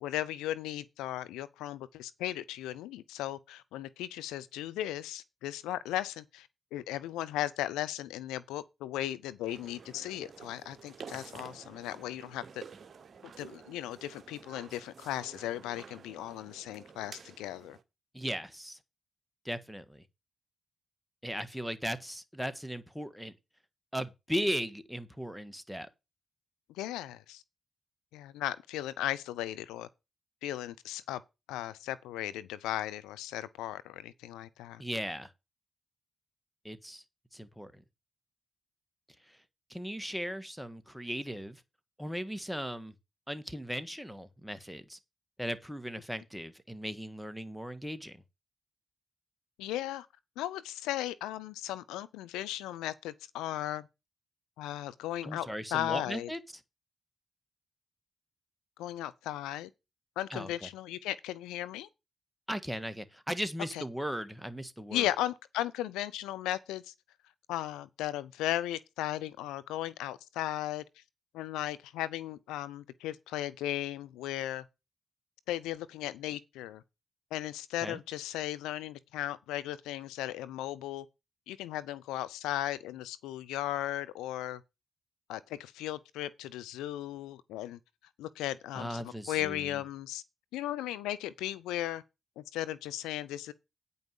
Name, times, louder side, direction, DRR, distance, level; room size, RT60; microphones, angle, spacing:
voice 1, 0.0-12.6 13.4-17.8 26.7-27.4 28.1-29.9 30.4-31.2 31.5-34.8 49.6-50.1 50.4-53.9 54.6-56.3 58.8-59.7 60.2-61.9 63.7-63.8 64.9-66.9 67.5-70.8 71.3-74.6 75.5-76.8 77.3-81.1 81.5-84.6 85.3-87.8 88.2-90.2 90.5-92.0 92.4-93.5, left 13 dB, 90° left, 0.5 m, -36 dB
sound 1, 9.4-17.8, right 6 dB, 55° right, 1.1 m, -50 dB
voice 2, 18.1-18.8 19.4-20.0 21.2-23.3 23.9-25.9 34.8-35.3 36.6-37.0 37.3-37.8 39.7-41.6 42.0-42.9 43.3-45.0 45.4-48.2 55.2-56.4 60.3-60.7 62.5-65.1 77.8-78.0 88.7-89.7, equal, ahead, 1.5 m, -37 dB
9.1 x 5.5 x 6.6 m
supercardioid pair, 40°, 0 cm